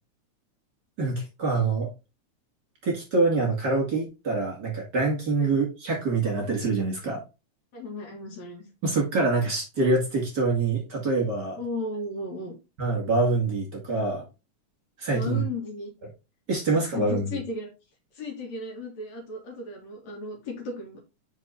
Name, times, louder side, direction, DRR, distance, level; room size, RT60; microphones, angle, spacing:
voice 1, 1.0-1.9 2.8-7.2 8.8-11.6 12.8-14.2 15.0-15.4 16.5-17.2, right 3 dB, 35° right, -2 dB, 2.4 m, -25 dB
voice 2, 7.7-8.7 11.6-12.5 15.1-15.9 16.7-17.7 18.1-21.0, left 2 dB, 60° left, 1 dB, 3.0 m, -35 dB
5.4 x 4.4 x 4.3 m, 0.27 s
omnidirectional pair, 3.6 m